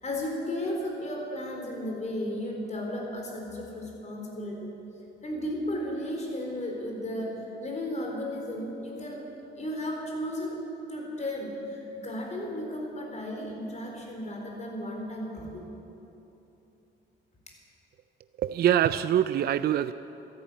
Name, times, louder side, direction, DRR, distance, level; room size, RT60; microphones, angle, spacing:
voice 1, 0.0-4.7 5.2-9.2 9.6-15.6, left 1 dB, 35° left, 0 dB, 4.0 m, -34 dB
voice 2, 18.4-19.9, right 10 dB, 55° right, 13 dB, 0.4 m, -24 dB
13.5 x 11.5 x 8.6 m, 3.0 s
cardioid pair, 90°, 20 cm